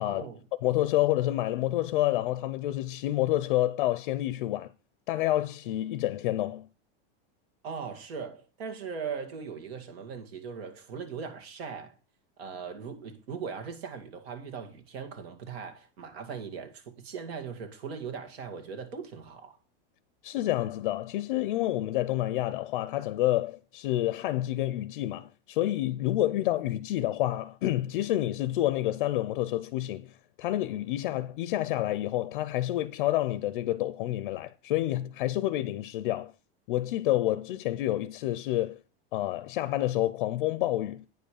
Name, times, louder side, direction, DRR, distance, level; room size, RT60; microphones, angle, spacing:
voice 1, 0.0-0.4 7.6-12.0 12.4-19.6, right 6 dB, 75° right, 2.2 m, -39 dB
voice 2, 0.6-4.7 5.1-6.7 20.2-30.1 30.4-36.3 36.7-38.8 39.1-41.0, left 14 dB, 55° left, 0.5 m, -28 dB
9.3 x 5.3 x 6.6 m
supercardioid pair, 175°, 30 cm